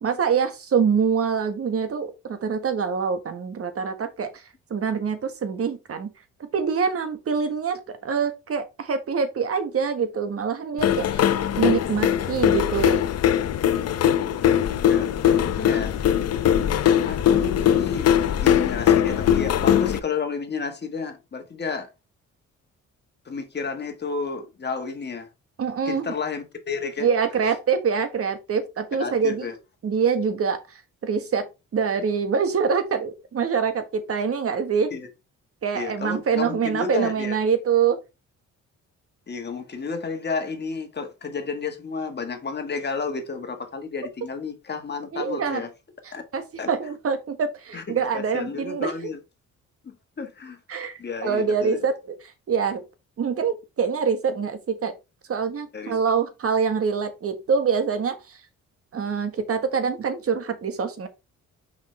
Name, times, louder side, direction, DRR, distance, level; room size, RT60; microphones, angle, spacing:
voice 1, 0.0-4.3 4.7-6.1 6.5-13.0 25.6-26.1 27.0-29.4 29.8-34.9 35.6-38.0 45.1-45.6 46.3-48.9 50.7-52.2 52.5-52.8 53.2-54.9 55.3-58.4 58.9-61.1, right 6 dB, 50° right, 1.5 m, -25 dB
sound 1, 10.8-20.0, left 10 dB, 55° left, 0.7 m, -21 dB
voice 2, 14.9-15.9 17.1-18.1 18.4-21.9 23.2-25.3 25.9-27.1 29.0-29.5 34.9-35.0 35.7-37.4 39.3-45.7 46.1-46.2 46.6-46.7 47.7-47.8 48.1-49.2 49.8-50.6 51.0-51.8 55.7-56.0, left 5 dB, 35° left, 1.5 m, -31 dB
6.0 x 5.3 x 3.3 m
cardioid pair, 90°, 30 cm